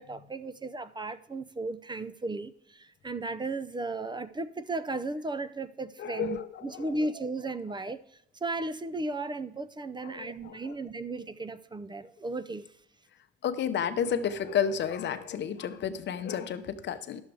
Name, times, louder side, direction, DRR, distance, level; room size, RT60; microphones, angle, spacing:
voice 1, 0.0-8.0 8.4-12.6, right 2 dB, 20° right, 0.6 m, -35 dB
voice 2, 6.0-6.9 10.0-10.7 13.4-17.2, left 8 dB, 65° left, 0.8 m, -31 dB
11.0 x 7.2 x 4.7 m
cardioid pair, 90°, 20 cm